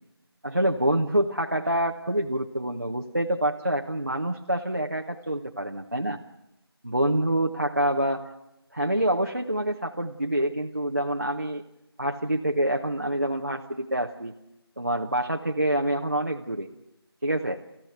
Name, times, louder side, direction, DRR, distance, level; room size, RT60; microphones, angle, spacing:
voice 1, 0.4-6.2 6.8-8.3 8.7-11.6 12.0-14.3 14.8-16.7 17.2-17.6, right 1 dB, 40° right, 2 dB, 0.9 m, -26 dB
29.5 x 15.0 x 8.0 m, 0.91 s
figure-of-eight pair, 170°, 14 cm